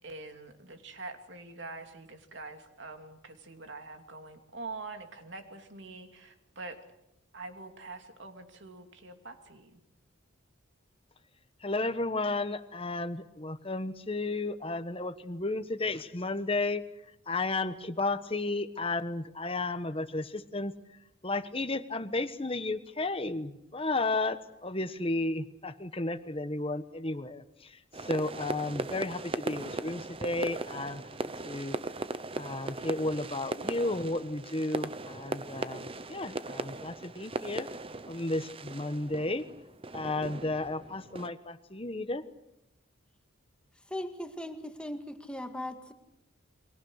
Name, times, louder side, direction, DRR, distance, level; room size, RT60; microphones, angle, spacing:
voice 1, 0.0-6.8 7.3-9.8, right 3 dB, 60° right, 5 dB, 2.9 m, -45 dB
voice 2, 11.6-16.9 17.3-20.7 21.2-31.0 31.4-31.8 32.3-37.7 38.1-39.4 39.9-42.2, left 2 dB, 25° left, 11 dB, 1.2 m, -33 dB
sound 1, 27.9-41.3, right 2 dB, 25° right, 0.9 m, -38 dB
voice 3, 43.9-45.9, left 1 dB, 5° left, 6 dB, 1.9 m, -38 dB
30.0 x 23.5 x 6.5 m, 0.87 s
head